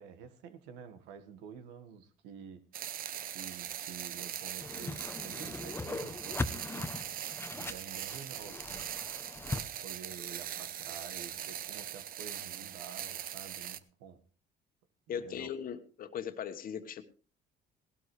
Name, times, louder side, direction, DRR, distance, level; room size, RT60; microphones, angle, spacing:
voice 1, 0.0-2.6 3.3-6.9 7.6-8.9 9.8-14.2 15.1-15.5, right 7 dB, 85° right, 1.6 m, -49 dB
sound 1, 2.7-13.8, right 10 dB, 55° right, 0.8 m, -41 dB
Whoosh swoosh swish, 4.6-9.6, left 3 dB, 15° left, 0.8 m, -39 dB
voice 2, 15.1-17.0, left 8 dB, 55° left, 1.4 m, -39 dB
18.0 x 12.5 x 3.3 m
cardioid pair, 95°, 18 cm